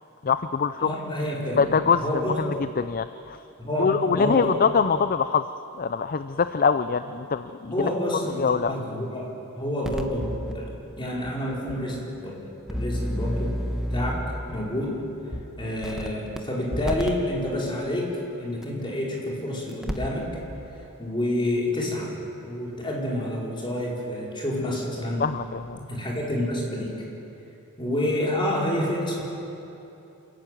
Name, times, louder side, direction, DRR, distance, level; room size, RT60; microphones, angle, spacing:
voice 1, 0.2-0.9 1.6-2.0 2.4-3.4 3.8-5.5 5.8-7.9 8.4-8.7 25.2-25.8, left 5 dB, 40° left, 12 dB, 0.5 m, -23 dB
voice 2, 0.8-1.7 2.0-2.5 3.6-4.6 7.6-9.3 9.6-10.7 11.0-12.4 12.7-13.6 13.9-14.2 14.5-15.0 15.6-18.1 18.4-20.3 21.0-22.1 22.4-25.2 25.9-26.9 27.8-29.2, left 1 dB, 20° left, -3 dB, 4.9 m, -28 dB
sound 1, 9.8-10.5 11.2-11.3 11.7-11.8 12.7-14.4 15.3-15.4 15.8-16.4 16.7-17.1 18.6-18.7 19.7-20.2 20.5-20.6, equal, 5° right, 1.2 m, -29 dB
27.5 x 14.5 x 9.3 m, 2.9 s
head